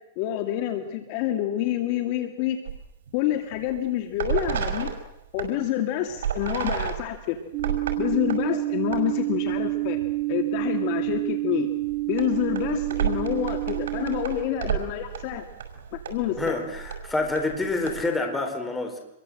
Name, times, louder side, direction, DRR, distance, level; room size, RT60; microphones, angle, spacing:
voice 1, 0.2-2.6 3.1-4.9 5.3-7.4 8.0-10.0 10.3-11.7 12.1-15.5 16.1-16.6, left 12 dB, 40° left, 6 dB, 2.3 m, -27 dB
sound 1, 2.7-3.2 3.5-3.8 4.1-5.5 6.2-8.4 8.8-9.0 9.5-10.2 10.6-10.7 11.1-11.2 11.8-18.1, right 8 dB, 80° right, 5.3 m, -32 dB
sound 2, 7.5-14.2, right 19 dB, 40° right, 3.6 m, -28 dB
voice 2, 16.4-19.0, left 2 dB, 10° left, 4 dB, 4.0 m, -27 dB
27.0 x 22.5 x 7.8 m, 0.85 s
supercardioid pair, 160°, 0 cm